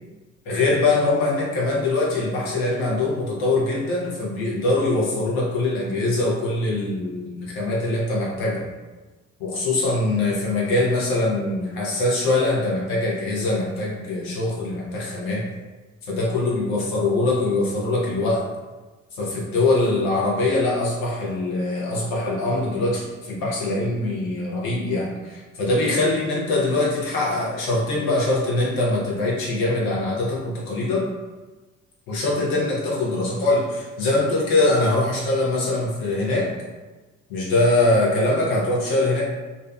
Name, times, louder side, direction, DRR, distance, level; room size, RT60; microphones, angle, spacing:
voice 1, 0.4-8.7 9.4-15.4 16.1-18.4 19.2-31.1 32.1-36.5 37.3-39.2, left 2 dB, 65° left, -4 dB, 0.9 m, -23 dB
2.6 x 2.2 x 2.3 m, 1.2 s
figure-of-eight pair, 45°, 40 cm